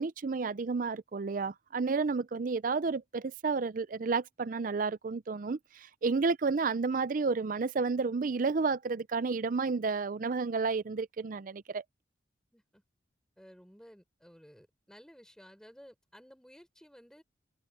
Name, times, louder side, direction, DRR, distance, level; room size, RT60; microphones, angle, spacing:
voice 1, 0.0-11.8, right 4 dB, 50° right, 0.5 m, -31 dB
voice 2, 12.5-12.8 13.4-17.2, equal, 5° left, 3.9 m, -55 dB
head